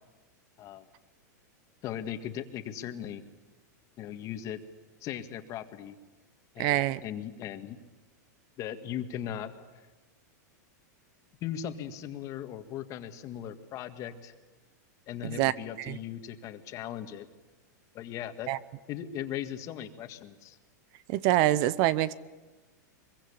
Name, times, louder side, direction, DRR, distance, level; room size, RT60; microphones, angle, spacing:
voice 1, 1.8-3.2 4.0-4.6 5.0-6.0 6.5-7.8 8.6-9.5 11.4-14.3 15.1-17.3 17.9-18.5 18.9-20.6, left 10 dB, 35° left, 8 dB, 1.8 m, -38 dB
voice 2, 6.6-7.0 15.2-15.5 15.8-16.0 18.5-18.6 21.1-22.1, right 14 dB, 45° right, 19 dB, 0.8 m, -25 dB
23.0 x 23.0 x 8.7 m, 1.2 s
supercardioid pair, 140°, 10 cm